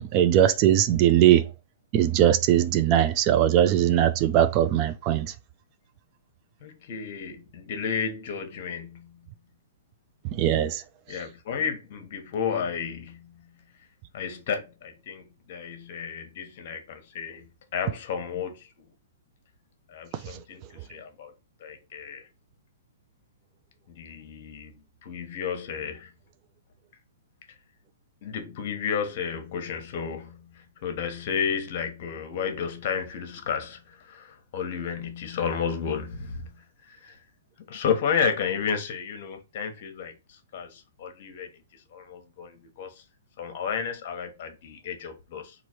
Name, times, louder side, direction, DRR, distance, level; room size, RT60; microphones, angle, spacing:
voice 1, 0.0-1.5 1.9-5.3 10.2-11.2 20.1-20.4 20.8-20.9, right 11 dB, 35° right, 0.3 m, -21 dB
voice 2, 6.6-9.2 11.1-13.5 14.1-18.9 19.9-21.3 21.6-22.2 23.9-24.7 25.0-26.1 28.2-37.2 37.7-41.5 41.9-42.9 43.4-45.5, left 6 dB, 50° left, 1.1 m, -32 dB
3.0 x 2.6 x 4.4 m
hypercardioid pair, 145°, 0 cm